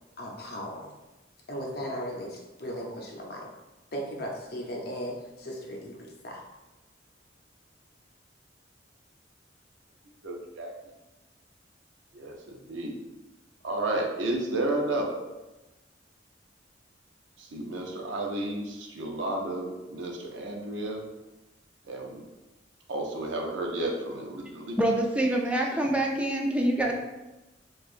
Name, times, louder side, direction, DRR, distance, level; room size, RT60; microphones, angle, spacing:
voice 1, 0.2-0.9 1.5-3.5 3.9-6.4, equal, 55° left, 0 dB, 0.7 m, -37 dB
voice 2, 10.2-10.7 12.1-12.9 13.6-15.2 17.4-21.0 21.9-22.2 22.9-24.7, right 2 dB, 85° right, 1 dB, 0.6 m, -32 dB
voice 3, 24.8-26.9, right 1 dB, 5° right, 0 dB, 0.4 m, -25 dB
4.5 x 2.4 x 2.5 m, 1.1 s
head